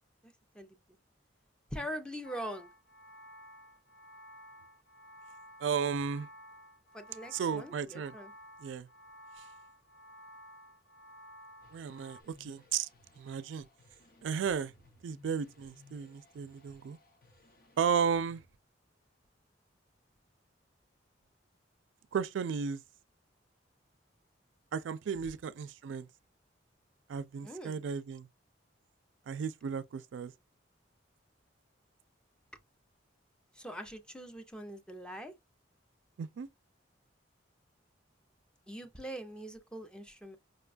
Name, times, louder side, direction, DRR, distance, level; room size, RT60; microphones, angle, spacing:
voice 1, 0.2-0.8 1.7-2.7 6.9-8.3 27.4-27.8 33.5-35.3 38.7-40.4, equal, 5° left, 0.5 m, -43 dB
sound 1, 2.2-12.2, equal, 80° left, 0.6 m, -54 dB
voice 2, 5.6-6.3 7.3-8.1 8.6-8.9 11.7-12.9 13.2-13.6 14.2-14.7 15.0-17.0 17.8-18.4 22.1-22.8 24.7-26.1 27.1-28.3 29.3-30.3 36.2-36.5, right 6 dB, 75° right, 0.3 m, -34 dB
sound 2, 11.6-18.5, left 2 dB, 50° left, 0.8 m, -62 dB
5.2 x 2.2 x 2.4 m
head